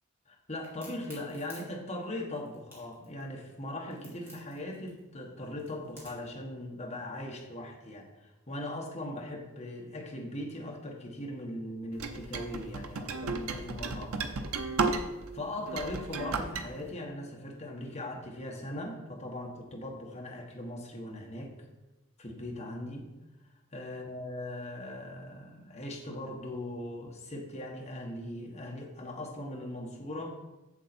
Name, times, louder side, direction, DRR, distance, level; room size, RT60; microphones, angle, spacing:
voice 1, 0.3-15.0 15.3-21.5 22.2-23.1 23.7-30.3, left 1 dB, 30° left, 0 dB, 1.4 m, -40 dB
Crack, 0.6-6.3, equal, 10° right, 2.2 m, -53 dB
sound 1, 12.0-15.3 15.7-16.6, right 4 dB, 75° right, 0.7 m, -33 dB
7.4 x 7.3 x 4.3 m, 1.0 s
head